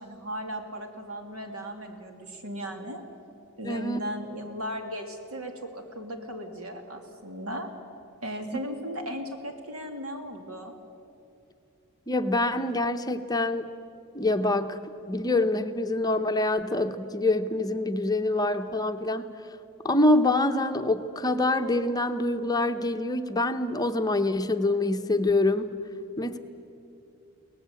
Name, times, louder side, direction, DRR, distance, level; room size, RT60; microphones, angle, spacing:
voice 1, 0.0-3.0 3.6-7.7 8.2-10.8, equal, 75° right, 5 dB, 2.8 m, -36 dB
voice 2, 3.6-4.0 12.1-13.7 14.1-14.8 15.1-19.3 19.8-25.7 26.2-26.4, left 2 dB, 15° left, 7 dB, 0.8 m, -25 dB
23.5 x 18.0 x 8.3 m, 2.8 s
head